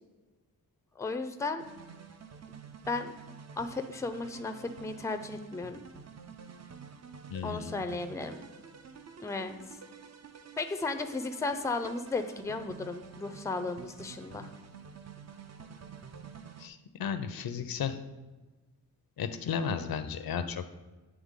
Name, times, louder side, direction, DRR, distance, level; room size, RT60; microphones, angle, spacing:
voice 1, 1.0-1.6 2.9-3.1 3.6-5.8 7.4-8.4 9.2-9.5 10.6-14.5, left 3 dB, 10° left, 8 dB, 0.4 m, -34 dB
sound 1, 1.6-16.7, right 6 dB, 45° right, 0.5 m, -49 dB
voice 2, 7.3-7.8 16.6-18.0 19.2-20.7, left 7 dB, 70° left, 10 dB, 0.6 m, -34 dB
8.8 x 3.3 x 3.7 m, 1.2 s
cardioid pair, 65°, 37 cm